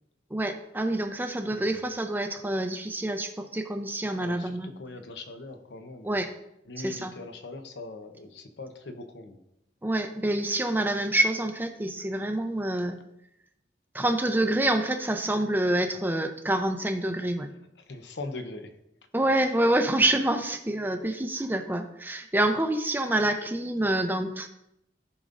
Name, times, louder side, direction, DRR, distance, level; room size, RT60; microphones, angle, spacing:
voice 1, 0.3-4.7 6.0-6.3 6.8-7.1 9.8-13.0 13.9-17.5 19.1-24.5, right 1 dB, 10° right, 6 dB, 0.6 m, -27 dB
voice 2, 1.5-1.8 4.2-6.2 6.7-9.4 17.9-18.7, left 2 dB, 80° left, 6 dB, 0.8 m, -41 dB
14.5 x 5.2 x 2.6 m, 0.82 s
head